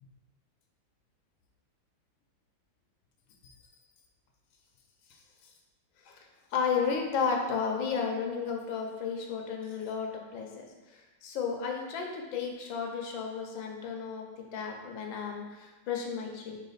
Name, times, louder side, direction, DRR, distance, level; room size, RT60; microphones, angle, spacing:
voice 1, 6.0-16.6, left 6 dB, 80° left, 2 dB, 1.6 m, -33 dB
5.7 x 4.1 x 4.0 m, 1.2 s
omnidirectional pair, 2.1 m